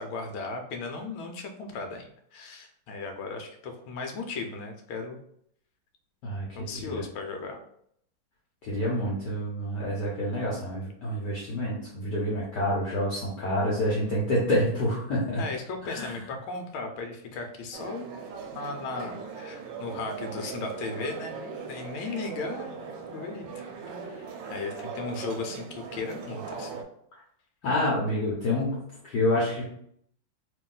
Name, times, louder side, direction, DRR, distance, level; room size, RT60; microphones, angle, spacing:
voice 1, 0.0-5.2 6.5-7.6 15.4-18.1 18.5-22.8 23.1-23.6 24.0-26.8, left 3 dB, 85° left, 4 dB, 1.4 m, -36 dB
voice 2, 6.2-7.0 8.6-15.4 15.9-16.1 24.4-24.6 27.6-28.8 29.0-29.6, left 1 dB, 60° left, -5 dB, 1.3 m, -28 dB
sound 1, 17.7-26.8, right 5 dB, 75° right, 1.1 m, -39 dB
3.0 x 2.8 x 3.7 m, 0.69 s
omnidirectional pair, 2.3 m